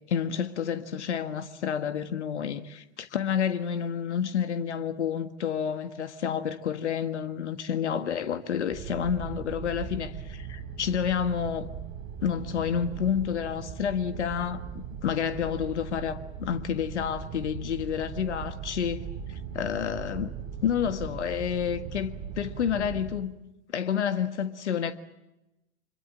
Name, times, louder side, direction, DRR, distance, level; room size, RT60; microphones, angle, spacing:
voice 1, 0.1-11.7 12.2-19.0 19.3-20.3 20.6-23.3 23.7-24.9, left 8 dB, 80° left, 1.7 m, -29 dB
sound 1, 8.7-23.2, right 7 dB, 50° right, 6.1 m, -39 dB
26.5 x 22.5 x 7.8 m
hypercardioid pair, 95°, 34 cm